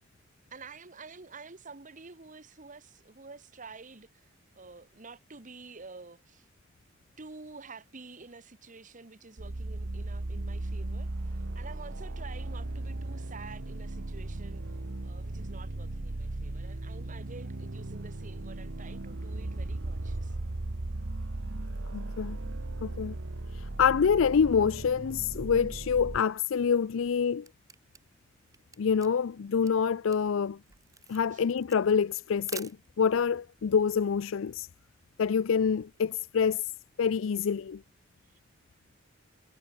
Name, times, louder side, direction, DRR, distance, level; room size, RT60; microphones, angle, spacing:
voice 1, 0.5-4.3 4.5-6.5 7.2-14.6 15.0-20.5 31.3-31.4, right 4 dB, 40° right, 1.4 m, -49 dB
sound 1, 9.4-26.2, right 2 dB, 70° right, 1.2 m, -37 dB
voice 2, 21.9-22.4 22.8-23.1 23.5-27.5 28.8-30.6 31.1-32.7 33.0-34.7 35.2-36.7 37.0-37.8, left 6 dB, 85° left, 0.4 m, -26 dB
Camera, 27.4-33.2, right 6 dB, 15° right, 0.9 m, -48 dB
head